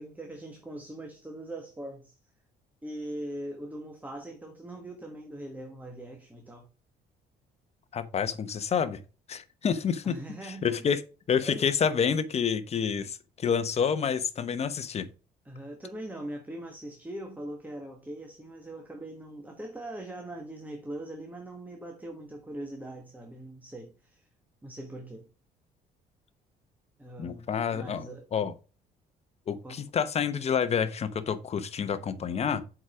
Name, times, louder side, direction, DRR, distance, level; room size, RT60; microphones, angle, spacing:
voice 1, 0.0-2.1 2.8-6.7 10.0-10.8 11.4-11.7 15.4-24.3 24.6-25.3 27.0-28.3 29.6-29.8, right 1 dB, 10° right, 1.4 m, -41 dB
voice 2, 7.9-9.0 9.3-10.2 10.4-11.0 11.3-15.1 27.2-28.1 28.3-28.5 29.5-32.6, left 7 dB, 40° left, 1.0 m, -28 dB
7.1 x 5.0 x 4.9 m
cardioid pair, 110°, 17 cm